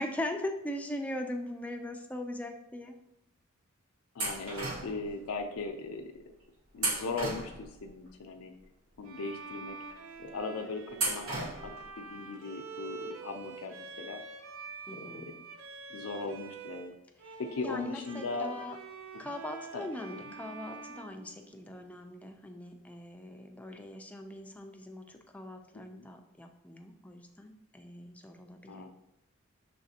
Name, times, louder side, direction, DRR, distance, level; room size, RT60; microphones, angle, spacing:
voice 1, 0.0-2.9 14.9-15.4 17.2-17.4 17.6-18.8 19.2-28.9, left 1 dB, 5° left, 4 dB, 0.3 m, -40 dB
voice 2, 4.1-6.3 6.7-8.5 9.0-9.8 10.2-14.2 14.9-15.4 15.9-16.9 17.4-18.5 19.1-19.3 19.7-19.9 20.1-20.2 26.0-26.1 28.7-28.9, left 3 dB, 90° left, 5 dB, 0.5 m, -39 dB
sound 1, 4.2-5.1 6.8-7.9 10.9-11.9, right 2 dB, 90° right, 1.3 m, -34 dB
Bowed string instrument, 9.0-16.9 17.2-22.0, right 4 dB, 65° right, 0.5 m, -46 dB
6.0 x 3.2 x 2.7 m, 0.84 s
head